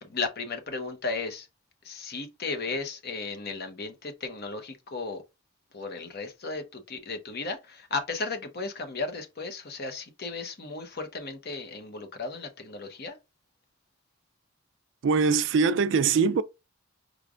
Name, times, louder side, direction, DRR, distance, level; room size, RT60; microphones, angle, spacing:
voice 1, 0.0-1.5 1.8-5.2 5.7-13.2, left 3 dB, 50° left, 0.9 m, -35 dB
voice 2, 15.0-16.4, right 5 dB, 65° right, 0.4 m, -22 dB
5.1 x 3.2 x 2.4 m
head